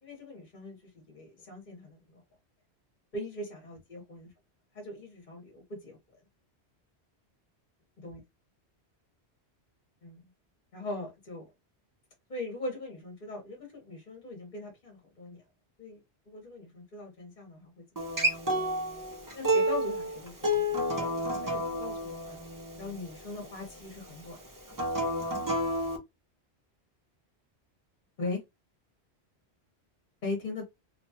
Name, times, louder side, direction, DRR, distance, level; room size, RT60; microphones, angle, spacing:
voice 1, 0.0-2.2 3.1-4.3 4.7-6.0 8.0-8.2 10.0-10.2 10.7-11.5 12.3-15.4 15.8-16.0 16.3-17.8 18.5-18.7 19.3-21.1 21.4-22.4 22.8-24.4 28.2-28.4 30.2-30.6, left 2 dB, 45° left, 1.1 m, -40 dB
Acoustic guitar, 18.0-23.2 24.7-26.0, equal, 25° right, 0.5 m, -30 dB
2.9 x 2.3 x 2.7 m
omnidirectional pair, 1.1 m